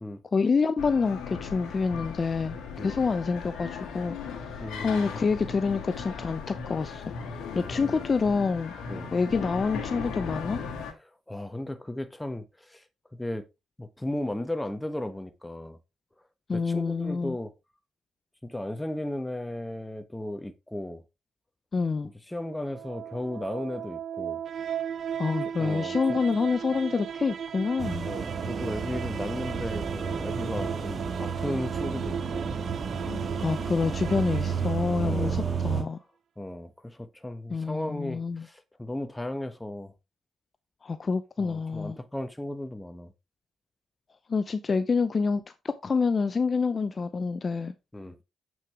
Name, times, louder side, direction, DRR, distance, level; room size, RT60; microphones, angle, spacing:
voice 1, 0.3-2.6 2.8-4.2 4.5-7.0 7.6-8.8 9.1-10.6 16.5-17.4 21.7-22.1 25.2-28.1 33.0-36.0 37.5-38.4 40.8-42.0 44.3-47.7, left 4 dB, 35° left, 0.6 m, -27 dB
sound 1, 0.8-10.9, left 5 dB, 75° left, 2.1 m, -37 dB
voice 2, 4.6-5.2 7.5-8.0 8.9-9.1 11.3-12.8 13.1-13.4 13.8-15.8 16.5-17.5 18.4-21.0 22.3-24.4 25.4-26.2 28.0-32.5 35.0-35.5 36.4-39.9 41.4-43.1 47.9-48.2, left 1 dB, 10° left, 1.2 m, -35 dB
sound 2, 22.5-35.5, right 8 dB, 55° right, 0.6 m, -36 dB
sound 3, 27.8-35.8, right 5 dB, 40° right, 1.7 m, -32 dB
7.7 x 6.2 x 3.5 m
cardioid pair, 90°, 0 cm